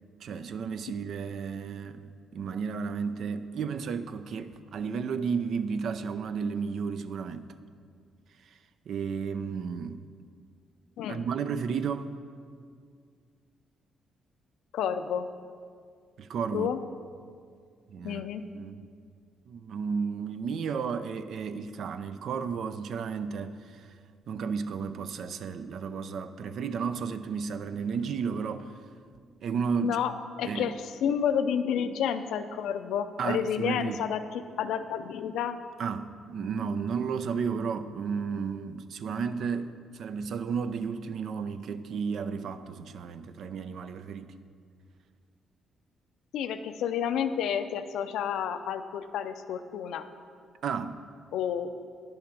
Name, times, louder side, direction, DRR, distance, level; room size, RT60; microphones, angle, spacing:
voice 1, 0.2-7.5 8.9-10.1 11.1-12.2 16.2-16.7 17.9-18.3 18.5-18.9 19.5-23.9 24.3-28.8 29.4-30.0 30.4-30.7 33.2-34.1 35.8-44.3 50.6-51.1, right 6 dB, 65° right, 0.5 m, -33 dB
voice 2, 14.7-15.3 16.5-16.8 18.0-18.4 29.8-30.1 30.4-30.7 31.0-35.6 46.3-50.1 51.3-51.7, left 8 dB, 85° left, 0.5 m, -30 dB
10.5 x 5.8 x 5.3 m
cardioid pair, 90°, 0 cm